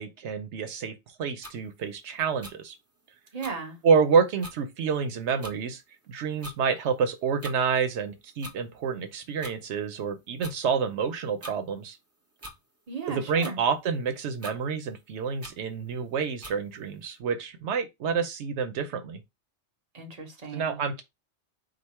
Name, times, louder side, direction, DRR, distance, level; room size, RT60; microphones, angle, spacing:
voice 1, 0.0-2.7 3.8-5.8 6.1-12.0 13.1-19.2 20.5-21.0, right 6 dB, 85° right, 1.0 m, -28 dB
sound 1, 1.4-1.6 2.4-2.5 3.4-3.5 4.1-4.2 4.4-4.6 5.4-5.6 6.4-6.6 7.4-7.6 8.4-8.6 9.4-9.6 10.4-10.5 11.4-11.6 12.4-12.6 13.4-13.6 14.4-14.6 15.4-15.5 16.4-16.6, right 1 dB, 15° right, 0.6 m, -41 dB
voice 2, 3.3-3.8 12.9-13.6 19.9-20.8, right 5 dB, 35° right, 1.2 m, -36 dB
5.1 x 2.0 x 4.2 m
omnidirectional pair, 1.1 m